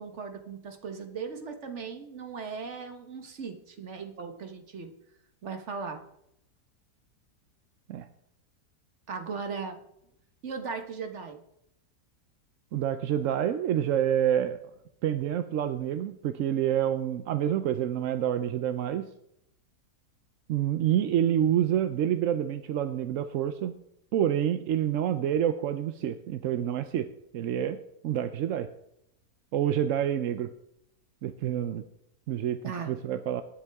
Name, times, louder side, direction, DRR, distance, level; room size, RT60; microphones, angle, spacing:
voice 1, 0.0-4.9 5.4-6.0 9.1-9.8 10.4-11.4 32.6-32.9, right 5 dB, 45° right, 6 dB, 1.5 m, -37 dB
voice 2, 12.7-14.6 15.0-19.1 20.5-23.7 24.1-27.1 27.3-27.8 28.0-28.7 29.5-30.5 31.2-31.8 32.3-32.6 32.9-33.4, right 10 dB, 65° right, 10 dB, 0.8 m, -27 dB
18.5 x 8.0 x 3.5 m, 0.78 s
omnidirectional pair, 1.7 m